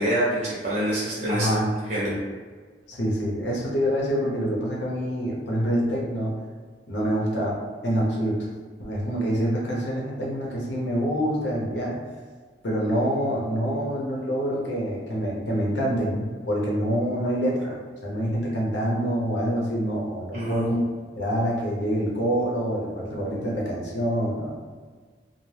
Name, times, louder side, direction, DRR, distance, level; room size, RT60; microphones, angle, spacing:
voice 1, 0.0-1.6 1.9-2.1 20.3-20.7, right 1 dB, 50° right, -6 dB, 0.5 m, -26 dB
voice 2, 1.3-1.7 2.9-6.3 6.9-7.6 7.8-8.4 8.8-12.0 12.6-17.8 18.0-20.8 21.2-24.6, equal, 90° left, -3 dB, 0.8 m, -26 dB
2.7 x 2.0 x 3.2 m, 1.5 s
head